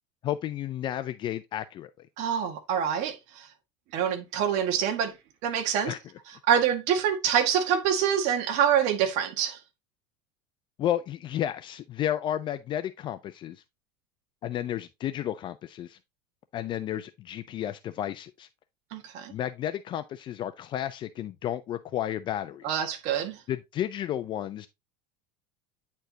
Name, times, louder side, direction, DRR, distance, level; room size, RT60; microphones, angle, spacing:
voice 1, 0.2-2.1 5.9-6.0 10.8-13.6 14.4-16.0 16.5-18.5 19.3-22.8 23.5-24.7, left 11 dB, 35° left, 0.4 m, -32 dB
voice 2, 2.2-3.5 3.9-5.2 5.4-5.9 6.5-9.6 18.9-19.3 22.6-23.4, right 8 dB, 60° right, 1.5 m, -26 dB
9.2 x 4.4 x 2.7 m
supercardioid pair, 130°, 14 cm